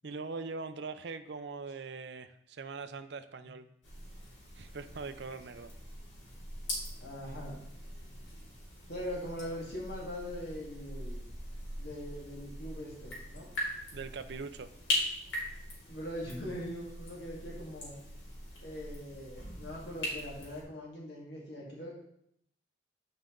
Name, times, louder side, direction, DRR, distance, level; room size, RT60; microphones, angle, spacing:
voice 1, 0.0-3.7 4.6-5.7 13.9-14.7, right 4 dB, 65° right, 10 dB, 0.5 m, -42 dB
sound 1, 3.8-20.6, left 1 dB, 90° left, 2.7 m, -41 dB
voice 2, 7.0-7.6 8.0-8.1 8.9-11.3 11.8-13.5 15.8-18.0 18.6-22.0, equal, 60° left, -3 dB, 1.9 m, -41 dB
8.0 x 5.6 x 3.8 m, 0.73 s
head